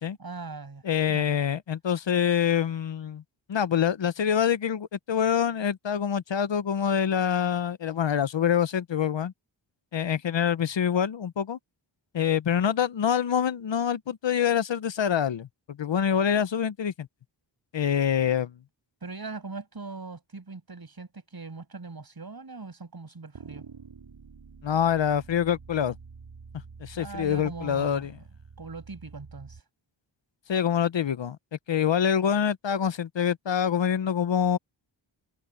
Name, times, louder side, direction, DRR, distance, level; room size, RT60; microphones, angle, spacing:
voice 1, 0.2-1.3 19.0-23.6 26.9-28.2 28.6-29.6, right 4 dB, 50° right, 7.1 m, -40 dB
voice 2, 0.8-3.2 3.5-9.3 9.9-11.6 12.1-17.1 17.7-18.5 24.6-26.0 26.8-28.1 30.5-31.4 31.7-34.6, left 8 dB, 65° left, 0.9 m, -25 dB
sound 1, 23.3-29.6, right 5 dB, 70° right, 3.8 m, -48 dB
cardioid pair, 60°, 47 cm